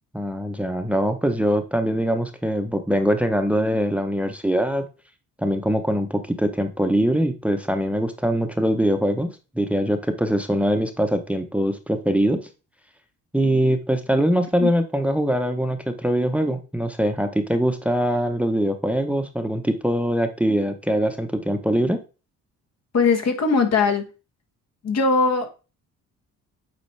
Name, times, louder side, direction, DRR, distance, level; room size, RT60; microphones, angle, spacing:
voice 1, 0.1-4.8 5.4-9.3 9.5-12.4 13.3-22.0, equal, 5° right, 0.8 m, -22 dB
voice 2, 22.9-24.0 24.8-25.5, left 4 dB, 60° left, 1.4 m, -20 dB
8.0 x 4.2 x 3.2 m
cardioid pair, 90°, 30 cm